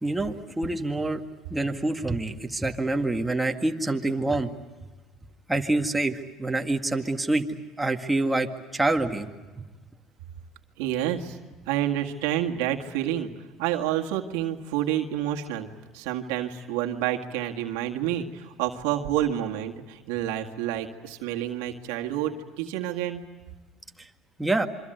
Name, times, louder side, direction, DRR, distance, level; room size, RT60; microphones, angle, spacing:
voice 1, 0.0-1.2 1.5-4.5 5.5-7.4 7.8-9.3 9.6-9.7 24.0-24.1 24.4-24.7, right 2 dB, 10° right, 3 dB, 1.9 m, -26 dB
voice 2, 10.8-11.4 11.7-13.3 13.6-15.7 15.9-23.2, right 11 dB, 85° right, 2 dB, 1.9 m, -29 dB
27.0 x 24.5 x 8.0 m, 1.3 s
supercardioid pair, 110°, 0 cm